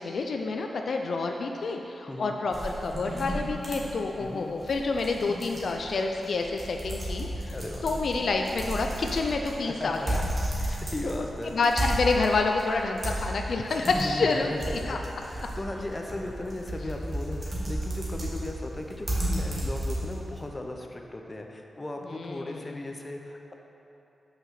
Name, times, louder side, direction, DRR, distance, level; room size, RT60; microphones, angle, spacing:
voice 1, 0.0-10.2 10.6-10.8 11.0-11.1 11.5-15.0 22.1-22.8, left 3 dB, 65° left, 3 dB, 0.4 m, -28 dB
sound 1, 2.5-20.4, right 1 dB, 35° right, 1.8 m, -33 dB
voice 2, 4.2-4.5 7.5-7.9 9.6-11.6 13.9-23.5, left 1 dB, 25° left, 2 dB, 0.7 m, -37 dB
5.8 x 5.5 x 6.6 m, 2.9 s
wide cardioid pair, 100°, 0 cm